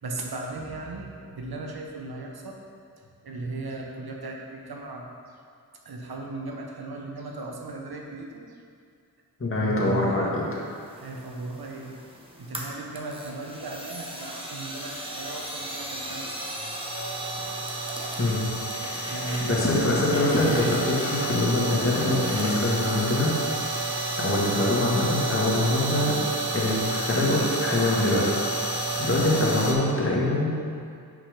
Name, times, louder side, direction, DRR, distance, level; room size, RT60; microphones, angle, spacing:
voice 1, 0.0-2.6 3.2-5.1 5.8-8.6 9.5-10.3 10.9-12.0 12.4-16.4 16.7-16.8 18.8-20.3 29.0-29.3, right 2 dB, 75° right, 0 dB, 1.0 m, -36 dB
voice 2, 9.4-10.4 18.2-18.4 19.5-23.3 24.2-26.1 26.5-28.3 29.0-30.5, left 2 dB, 35° left, -5 dB, 1.7 m, -24 dB
sound 1, 10.9-29.7, right 2 dB, 15° right, 1.0 m, -31 dB
5.7 x 5.1 x 5.1 m, 2.3 s
wide cardioid pair, 60°, 38 cm